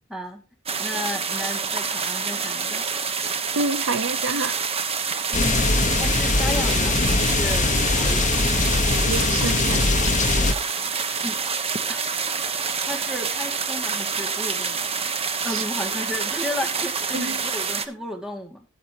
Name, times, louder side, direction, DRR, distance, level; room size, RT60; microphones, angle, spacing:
voice 1, 0.1-0.4 0.8-2.8 5.3-8.6 11.1-11.4 11.9-12.0 12.3-14.8 15.4-18.7, left 1 dB, 5° right, 2.2 m, -34 dB
sound 1, 0.7-17.9, right 5 dB, 30° right, 1.1 m, -27 dB
voice 2, 3.6-4.5 9.1-9.8 15.5-15.6 17.1-17.4, right 3 dB, 70° right, 0.7 m, -27 dB
sound 2, 5.3-10.5, left 3 dB, 40° left, 1.2 m, -21 dB
13.5 x 8.3 x 2.9 m
head